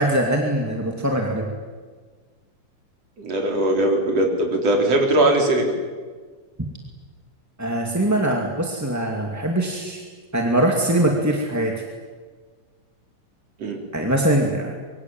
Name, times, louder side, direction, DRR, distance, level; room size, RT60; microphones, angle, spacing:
voice 1, 0.0-1.5 7.6-10.0 10.3-11.8 13.9-14.7, right 1 dB, 5° right, 0 dB, 1.9 m, -22 dB
voice 2, 3.2-5.7 13.6-13.8, right 1 dB, 45° right, 2 dB, 5.0 m, -20 dB
25.0 x 23.5 x 9.1 m, 1.5 s
omnidirectional pair, 3.9 m